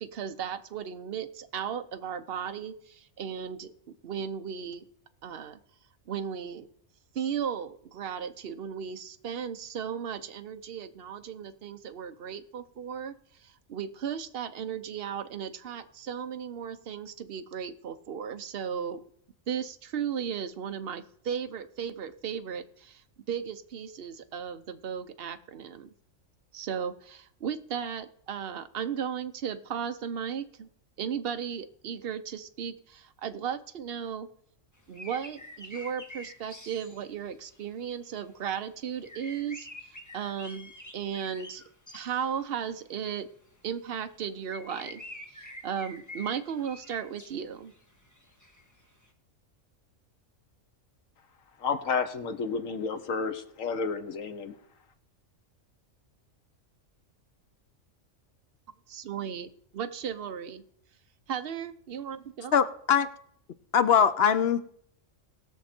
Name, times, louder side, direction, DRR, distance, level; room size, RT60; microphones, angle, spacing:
voice 1, 0.0-3.7 4.0-4.8 5.2-5.6 6.1-6.7 7.1-19.0 19.5-25.9 26.5-30.7 31.0-34.3 34.9-39.7 40.1-41.6 41.9-43.3 43.6-45.0 45.3-47.7 58.9-60.6 61.3-62.6, right 8 dB, 55° right, 9 dB, 0.9 m, -35 dB
sound 1, 34.8-38.1 38.5-38.6 39.0-42.6 43.2-43.3 44.0-44.2 44.5-49.1, left 1 dB, 15° left, 1.3 m, -47 dB
voice 2, 51.6-54.5, left 5 dB, 80° left, 8 dB, 1.4 m, -31 dB
voice 3, 62.5-63.1 63.7-64.6, left 7 dB, 60° left, 12 dB, 0.7 m, -22 dB
19.5 x 6.5 x 4.4 m, 0.65 s
omnidirectional pair, 1.3 m